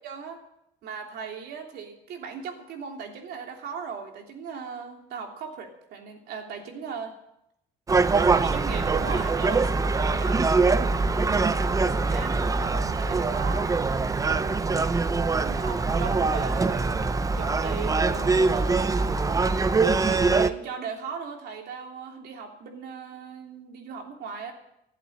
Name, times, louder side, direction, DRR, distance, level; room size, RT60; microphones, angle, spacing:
voice 1, 0.0-0.4 0.8-7.1 8.4-10.5 12.0-13.9 15.4-18.8 20.0-24.5, right 6 dB, 70° right, 2 dB, 3.1 m, -38 dB
Gull seagull, 7.9-20.5, right 4 dB, 20° right, 0.7 m, -23 dB
15.0 x 8.3 x 8.6 m, 0.80 s
cardioid pair, 110°, 17 cm